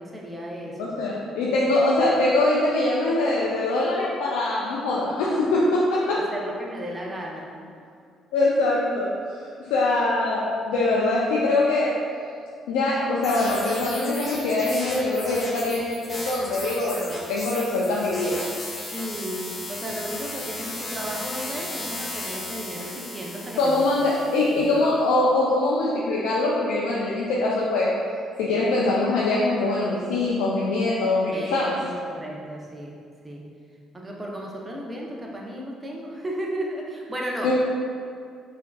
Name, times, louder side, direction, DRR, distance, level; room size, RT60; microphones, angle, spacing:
voice 1, 0.0-1.0 6.2-7.6 18.9-23.8 31.3-32.9 33.2-33.5 33.9-37.5, right 1 dB, 25° right, -2 dB, 0.6 m, -34 dB
voice 2, 0.8-6.2 8.3-9.1 9.7-12.0 12.7-18.4 23.6-27.9 28.4-31.8 37.4-37.5, left 2 dB, 90° left, -5 dB, 0.3 m, -23 dB
sound 1, 13.2-24.6, left 1 dB, 30° left, 0.7 m, -36 dB
4.4 x 2.6 x 2.3 m, 2.3 s
supercardioid pair, 75°, 0 cm